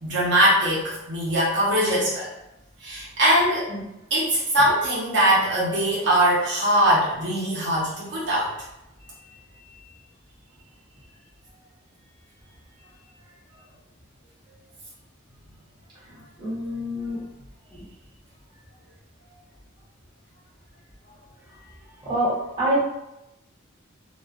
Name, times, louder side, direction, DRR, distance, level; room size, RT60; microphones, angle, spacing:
voice 1, 0.0-2.3 2.8-3.8 4.1-8.5, right 1 dB, 60° right, -7 dB, 0.9 m, -21 dB
voice 2, 16.4-17.2 22.0-22.8, right 1 dB, 20° right, -9 dB, 0.8 m, -25 dB
2.6 x 2.4 x 2.3 m, 0.88 s
head